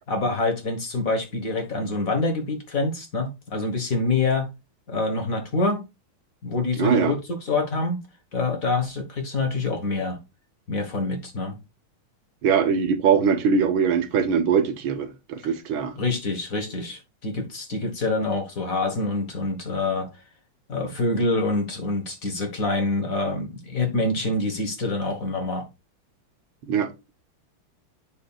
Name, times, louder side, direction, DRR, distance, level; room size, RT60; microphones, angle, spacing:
voice 1, 0.1-4.5 4.9-5.8 6.4-8.0 8.3-10.2 10.7-11.6 16.0-20.1 20.7-25.7, left 2 dB, 45° left, 1.6 m, -26 dB
voice 2, 6.8-7.1 12.4-15.9 26.6-26.9, right 6 dB, 70° right, 1.7 m, -22 dB
8.8 x 6.3 x 2.3 m
omnidirectional pair, 2.4 m